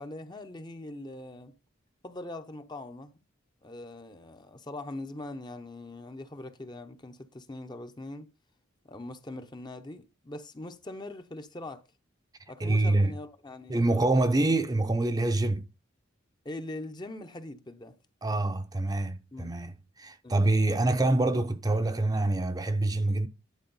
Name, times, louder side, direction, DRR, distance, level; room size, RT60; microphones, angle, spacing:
voice 1, 0.0-1.5 2.0-3.1 3.6-8.3 8.9-11.8 12.5-14.4 16.4-18.0 19.3-19.5 20.2-20.4, left 2 dB, 20° left, 0.7 m, -42 dB
voice 2, 12.6-13.1 13.7-15.7 18.2-23.3, right 2 dB, 20° right, 0.6 m, -26 dB
10.5 x 4.6 x 5.4 m
head